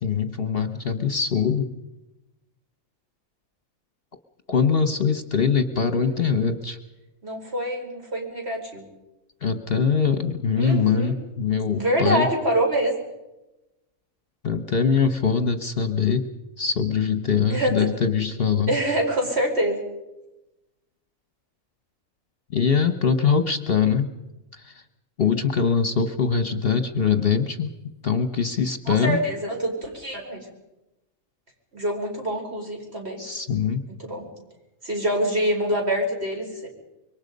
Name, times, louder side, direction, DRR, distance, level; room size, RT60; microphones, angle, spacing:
voice 1, 0.0-1.7 4.5-6.8 9.4-12.3 14.4-16.3 16.6-18.7 22.5-24.1 24.5-24.8 25.2-27.7 28.0-29.2 33.2-33.8, left 6 dB, 45° left, 9 dB, 1.2 m, -22 dB
voice 2, 5.9-6.4 7.2-8.8 10.6-11.1 11.7-13.0 17.5-17.9 18.7-19.8 28.9-30.5 31.7-33.2 34.0-34.3 34.8-36.7, right 1 dB, 50° right, 1 dB, 5.0 m, -25 dB
26.0 x 23.0 x 5.3 m, 0.98 s
omnidirectional pair, 1.4 m